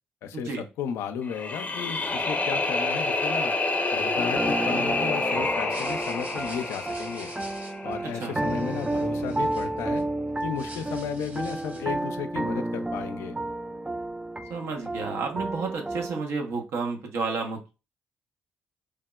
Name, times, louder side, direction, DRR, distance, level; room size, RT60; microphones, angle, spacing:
voice 1, 0.2-3.6 3.9-7.3 7.8-10.0 10.4-13.4, left 7 dB, 75° left, 9 dB, 0.4 m, -34 dB
sound 1, 1.2-8.3, left 2 dB, 35° left, 0.6 m, -28 dB
sound 2, 4.2-16.2, right 2 dB, 15° right, 0.3 m, -31 dB
sound 3, 5.6-10.0 10.4-12.0, right 2 dB, 40° right, 1.1 m, -46 dB
voice 2, 14.5-17.7, right 4 dB, 70° right, 3 dB, 0.7 m, -31 dB
3.4 x 2.0 x 2.2 m, 0.30 s
hypercardioid pair, 50°, 5 cm